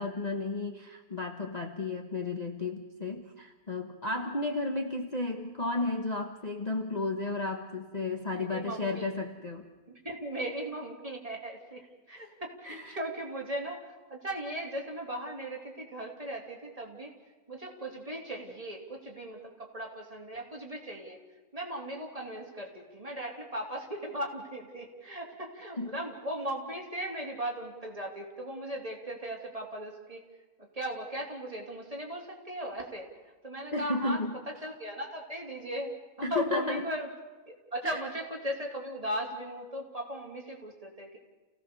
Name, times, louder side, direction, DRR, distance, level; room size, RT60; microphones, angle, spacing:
voice 1, 0.0-9.7 12.1-12.3 12.6-13.0 25.8-25.9 33.7-34.3 36.2-36.8 37.8-38.0, left 2 dB, 30° left, 2 dB, 1.2 m, -33 dB
voice 2, 8.4-9.1 9.9-11.8 12.1-17.1 17.5-21.2 21.5-30.2 30.7-33.1 33.4-34.2 34.6-35.9 36.2-37.1 37.7-41.2, right 1 dB, 25° right, -1 dB, 3.4 m, -37 dB
29.0 x 17.0 x 7.0 m, 1.2 s
omnidirectional pair, 1.6 m